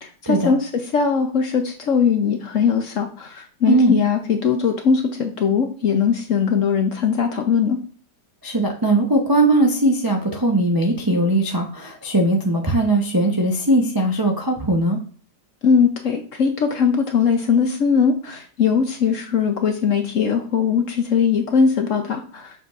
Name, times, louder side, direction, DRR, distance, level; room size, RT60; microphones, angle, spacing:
voice 1, 0.0-7.8 15.6-22.5, left 6 dB, 60° left, 5 dB, 0.9 m, -20 dB
voice 2, 3.7-4.0 8.4-15.0, right 2 dB, 30° right, 0 dB, 0.4 m, -19 dB
7.0 x 5.9 x 2.5 m, 0.42 s
omnidirectional pair, 1.9 m